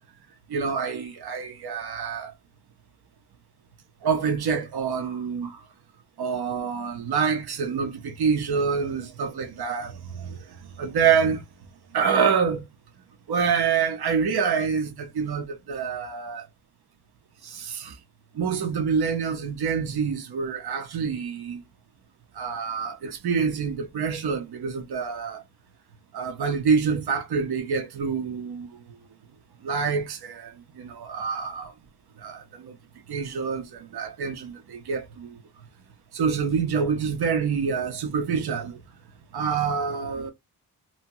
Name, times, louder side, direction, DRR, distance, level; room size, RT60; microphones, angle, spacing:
voice 1, 0.5-2.3 4.0-5.5 6.2-9.9 10.8-11.4 11.9-12.6 13.3-16.4 17.5-17.9 18.4-21.6 22.4-25.4 26.1-28.7 29.6-30.5 30.8-31.7 32.2-32.4 32.6-32.7 33.1-33.7 33.9-35.3 36.1-38.7 39.3-40.3, right 6 dB, 80° right, 0.7 m, -26 dB
2.8 x 2.1 x 2.7 m
wide cardioid pair, 135°, 38 cm